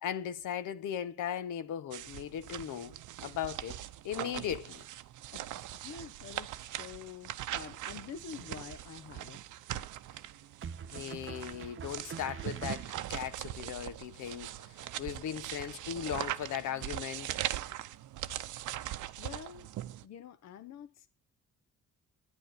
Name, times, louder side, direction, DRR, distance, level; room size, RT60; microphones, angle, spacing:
voice 1, 0.0-3.8 4.0-4.8 10.9-14.6 15.0-17.3, left 9 dB, 80° left, 1.4 m, -38 dB
sound 1, 1.9-20.0, right 14 dB, 80° right, 0.8 m, -41 dB
voice 2, 5.8-9.4 9.7-10.3 18.3-18.4 19.2-19.7 20.0-21.1, left 7 dB, 60° left, 1.0 m, -47 dB
sound 2, 7.9-8.5 10.6-13.3, right 6 dB, 40° right, 0.9 m, -45 dB
11.5 x 10.0 x 6.7 m
cardioid pair, 90°, 30 cm